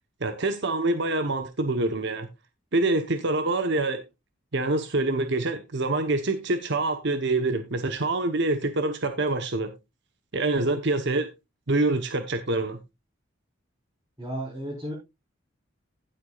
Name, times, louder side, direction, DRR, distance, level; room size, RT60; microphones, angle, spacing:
voice 1, 0.2-2.3 2.7-4.0 4.5-9.7 10.3-11.3 11.7-12.8, right 2 dB, 60° right, 1.1 m, -26 dB
voice 2, 14.2-14.9, right 1 dB, 15° right, 4.7 m, -33 dB
15.5 x 8.1 x 2.4 m
head